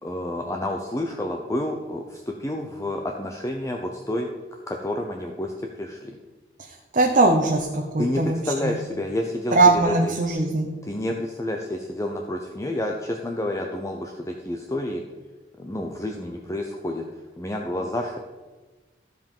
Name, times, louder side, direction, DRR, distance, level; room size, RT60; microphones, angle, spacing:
voice 1, 0.0-4.3 4.7-5.5 5.8-6.2 8.0-9.6 9.8-10.1 10.8-15.0 15.6-17.0 17.4-18.2, left 1 dB, 15° left, 1 dB, 0.7 m, -29 dB
voice 2, 6.9-8.8 9.5-10.7, right 2 dB, 45° right, 0 dB, 1.0 m, -20 dB
14.5 x 5.2 x 5.4 m, 1.2 s
head